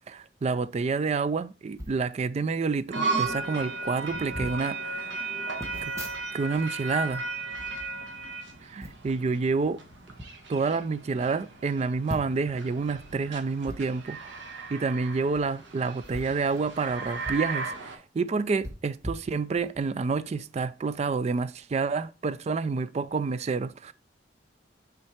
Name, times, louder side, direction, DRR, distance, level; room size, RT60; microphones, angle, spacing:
voice 1, 0.1-5.1 5.8-6.0 6.3-7.2 8.6-9.8 10.5-14.4 14.7-23.9, right 4 dB, 35° right, 0.3 m, -29 dB
sound 1, 1.7-2.0 2.9-3.0 3.2-3.5 4.0-4.6 5.6-6.6 6.9-8.3 8.8-9.1 9.9-10.3 10.8-10.9 11.2-11.3 12.0-12.5 13.6-13.8 15.2-15.4 16.0-17.5 17.8-17.9 18.6-19.8 20.3-20.5, equal, 15° right, 0.9 m, -41 dB
sound 2, 2.9-18.0, right 3 dB, 90° right, 1.2 m, -36 dB
6.2 x 3.7 x 4.4 m
head